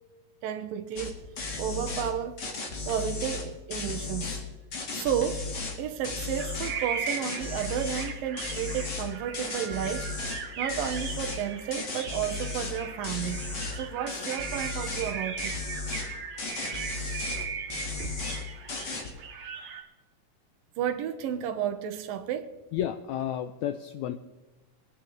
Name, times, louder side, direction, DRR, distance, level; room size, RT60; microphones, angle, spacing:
voice 1, 0.4-1.2 1.6-2.4 2.9-4.3 4.9-5.5 5.8-10.1 10.6-13.4 13.8-15.6 18.0-18.2 20.8-22.5, right 9 dB, 90° right, 2.8 m, -32 dB
sound 1, 1.0-1.1 1.4-2.1 2.4-4.4 4.7-5.8 6.0-6.7 7.1-8.1 8.4-10.4 10.7-11.4 11.7-12.8 13.0-13.8 14.1-15.1 15.4-16.1 16.4-17.4 17.7-18.4 18.7-19.1, left 4 dB, 40° left, 1.9 m, -35 dB
sound 2, 6.4-19.8, right 6 dB, 60° right, 3.1 m, -38 dB
voice 2, 22.7-24.2, left 10 dB, 85° left, 1.6 m, -31 dB
23.5 x 11.0 x 3.2 m
omnidirectional pair, 3.9 m